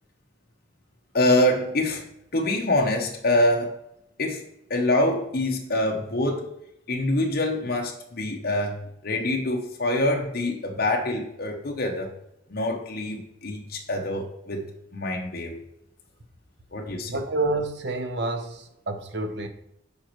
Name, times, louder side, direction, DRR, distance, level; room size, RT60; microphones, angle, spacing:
voice 1, 1.1-2.1 2.3-3.8 4.2-4.4 4.7-6.5 6.9-12.1 12.5-14.7 14.9-15.6 16.7-17.2, left 1 dB, 55° left, 1 dB, 1.0 m, -25 dB
voice 2, 17.1-19.5, right 2 dB, 65° right, 6 dB, 0.9 m, -28 dB
9.1 x 5.3 x 3.1 m, 0.81 s
head